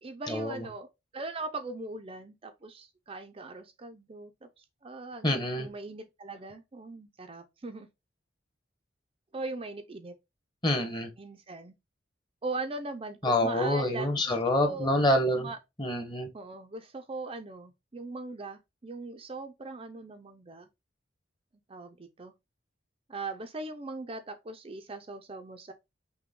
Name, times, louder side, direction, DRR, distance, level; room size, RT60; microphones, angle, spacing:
voice 1, 0.0-4.5 4.8-7.9 9.3-10.2 11.2-11.8 12.4-14.3 14.6-14.9 15.3-15.6 16.3-20.7 21.7-22.3 23.1-25.7, right 2 dB, 30° right, 0.5 m, -40 dB
voice 2, 5.2-5.7 10.6-11.1 13.2-15.5 15.8-16.3, left 1 dB, 25° left, 1.0 m, -27 dB
5.8 x 2.2 x 3.6 m
head